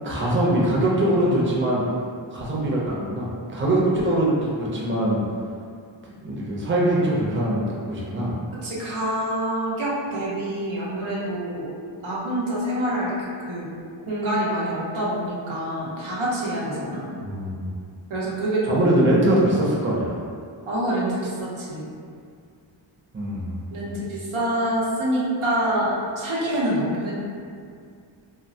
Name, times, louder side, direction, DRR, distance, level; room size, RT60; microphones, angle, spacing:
voice 1, 0.0-1.8 2.3-5.2 6.0-8.4 17.2-17.7 18.7-20.2 23.1-24.0, right 1 dB, 25° right, -5 dB, 0.6 m, -22 dB
voice 2, 8.6-11.7 12.0-13.1 13.4-13.7 14.1-17.2 18.1-18.7 20.7-21.9 23.7-27.1, right 1 dB, 90° right, -6 dB, 0.8 m, -26 dB
2.9 x 2.2 x 2.7 m, 2.2 s
wide cardioid pair, 65°, 47 cm